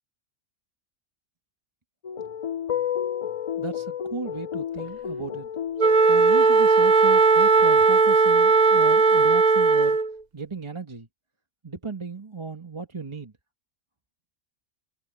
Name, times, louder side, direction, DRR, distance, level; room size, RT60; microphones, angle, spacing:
sound 1, 2.0-6.2, left 9 dB, 50° left, 0.4 m, -31 dB
voice 1, 3.6-5.5 6.1-10.0 10.3-11.1 11.6-13.3, right 4 dB, 25° right, 1.4 m, -36 dB
Wind instrument woodwind instrument, 5.8-10.2, right 4 dB, 45° right, 0.6 m, -17 dB
omnidirectional pair, 1.2 m